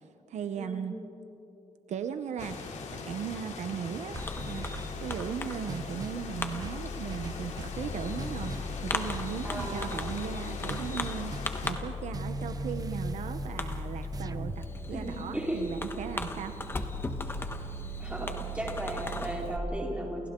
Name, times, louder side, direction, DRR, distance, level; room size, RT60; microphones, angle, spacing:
voice 1, 0.3-0.9 1.9-11.3 11.6-16.5, right 7 dB, 75° right, 9 dB, 0.8 m, -37 dB
sound 1, 2.4-11.7, left 4 dB, 85° left, 2.8 m, -41 dB
sound 2, 4.1-5.3 5.7-6.3 6.6-7.8 8.2-8.8 9.1-10.3 10.7-11.9 12.1-14.6, right 4 dB, 30° right, 0.7 m, -40 dB
Fireworks, 4.2-19.6, left 2 dB, 20° left, 1.1 m, -37 dB
voice 2, 9.4-9.9 14.9-15.6 18.0-20.3, equal, 10° right, -3 dB, 3.9 m, -36 dB
29.5 x 28.5 x 3.8 m, 2.9 s
wide cardioid pair, 165°, 12 cm